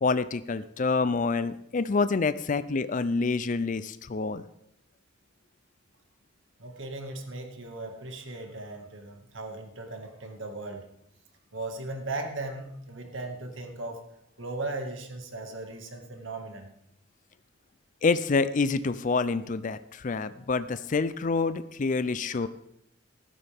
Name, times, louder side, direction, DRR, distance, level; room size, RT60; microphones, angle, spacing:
voice 1, 0.0-4.5 18.0-22.5, left 4 dB, 40° left, 13 dB, 0.5 m, -27 dB
voice 2, 6.6-10.9 11.5-14.0 14.4-16.7 22.3-22.5, right 2 dB, 75° right, 4 dB, 1.9 m, -37 dB
15.0 x 12.5 x 3.5 m, 0.77 s
head